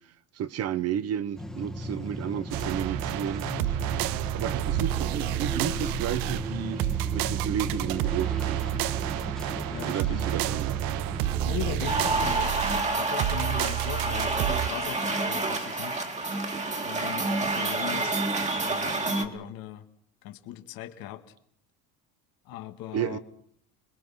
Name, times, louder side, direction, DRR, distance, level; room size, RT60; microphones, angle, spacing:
voice 1, 0.3-3.8 4.3-8.6 9.8-10.9 22.9-23.2, right 10 dB, 45° right, 1.2 m, -32 dB
sound 1, 1.4-12.4, equal, ahead, 1.8 m, -36 dB
sound 2, 2.5-14.7, right 15 dB, 70° right, 0.8 m, -30 dB
voice 2, 9.7-10.4 11.2-16.0 16.8-18.3 18.6-19.9 20.2-21.2 22.5-23.2, left 12 dB, 70° left, 2.1 m, -39 dB
sound 3, 11.8-19.3, right 3 dB, 20° right, 2.3 m, -28 dB
26.0 x 21.5 x 5.8 m
cardioid pair, 135°, 36 cm